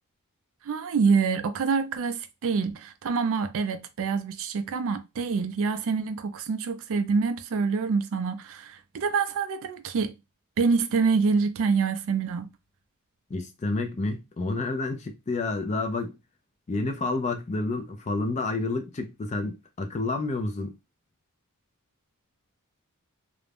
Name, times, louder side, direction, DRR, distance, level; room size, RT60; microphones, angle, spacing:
voice 1, 0.6-10.1 10.6-12.5, right 5 dB, 65° right, 0.4 m, -26 dB
voice 2, 13.3-16.2 16.7-20.8, left 3 dB, 30° left, 0.4 m, -29 dB
2.5 x 2.1 x 3.3 m
head